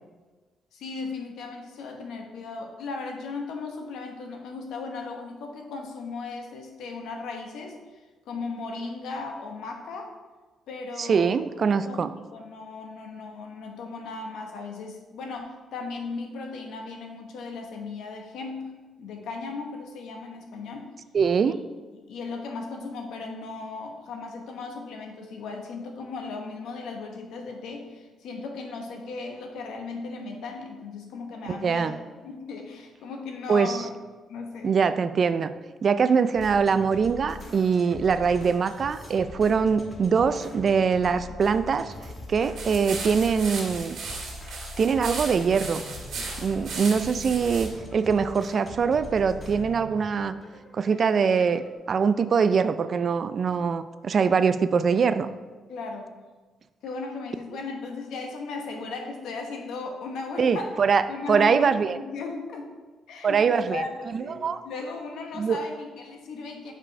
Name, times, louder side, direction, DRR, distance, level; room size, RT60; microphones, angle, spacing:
voice 1, 0.7-7.8 8.3-10.1 10.7-11.4 11.8-18.7 19.0-20.9 21.4-21.6 21.9-31.9 32.2-33.9 34.3-34.8 55.7-56.2 56.8-60.8 61.1-62.7 63.1-66.7, left 4 dB, 80° left, 3 dB, 1.1 m, -36 dB
voice 2, 11.0-12.1 21.1-21.6 31.5-32.0 33.5-33.8 34.6-35.5 35.8-41.9 42.3-44.0 44.8-45.8 46.4-50.3 50.7-51.6 51.9-55.3 60.4-61.0 61.3-62.0 63.2-63.8 64.1-64.6 65.4-65.6, right 6 dB, 50° right, 12 dB, 0.4 m, -23 dB
sound 1, 36.3-51.7, left 2 dB, 30° left, 1.3 m, -42 dB
sound 2, 42.6-47.7, right 4 dB, 65° right, 2.2 m, -36 dB
5.5 x 5.0 x 4.9 m, 1.3 s
cardioid pair, 90°, 0 cm